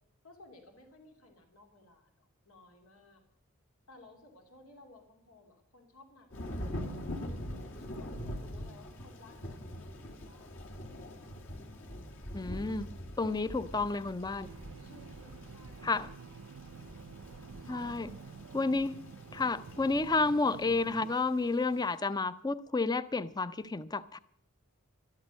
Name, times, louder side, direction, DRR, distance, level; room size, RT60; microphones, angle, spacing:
voice 1, 0.2-3.2 3.9-10.6 14.8-16.1 17.6-18.0, left 2 dB, 90° left, 2.9 m, -58 dB
Thunder / Rain, 6.3-21.9, equal, 65° left, 2.6 m, -44 dB
voice 2, 12.3-12.9 13.2-14.5 15.8-16.1 17.7-18.1 18.5-19.0 19.3-24.2, left 3 dB, 20° left, 0.5 m, -31 dB
sound 1, 14.4-21.2, right 5 dB, 75° right, 0.4 m, -49 dB
12.5 x 12.5 x 6.4 m
head